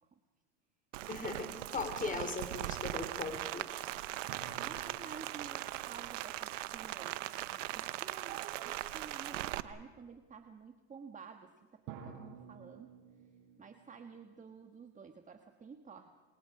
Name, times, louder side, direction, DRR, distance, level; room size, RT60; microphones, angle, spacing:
Rain, 0.9-9.6, right 15 dB, 90° right, 1.0 m, -40 dB
voice 1, 1.1-3.7, left 4 dB, 20° left, 7 dB, 3.4 m, -39 dB
sound 1, 4.3-7.6 11.9-15.2, right 7 dB, 60° right, 6.3 m, -54 dB
voice 2, 4.4-12.9 13.6-16.1, right 5 dB, 20° right, 6 dB, 1.5 m, -52 dB
28.5 x 28.0 x 4.9 m, 1.3 s
supercardioid pair, 110°, 37 cm